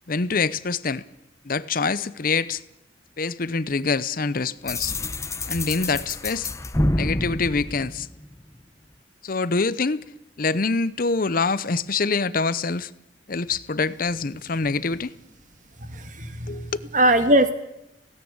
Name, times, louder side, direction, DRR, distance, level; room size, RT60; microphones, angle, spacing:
voice 1, 0.1-1.0 1.4-2.6 3.2-4.9 5.5-6.5 6.9-8.1 9.2-10.0 10.4-12.9 13.3-15.1 16.5-16.7, left 4 dB, 50° left, 0.7 m, -25 dB
sound 1, 4.7-8.5, left 1 dB, 15° left, 0.9 m, -28 dB
voice 2, 15.8-16.7 16.9-17.5, right 1 dB, 45° right, 1.8 m, -20 dB
17.5 x 17.0 x 8.8 m
head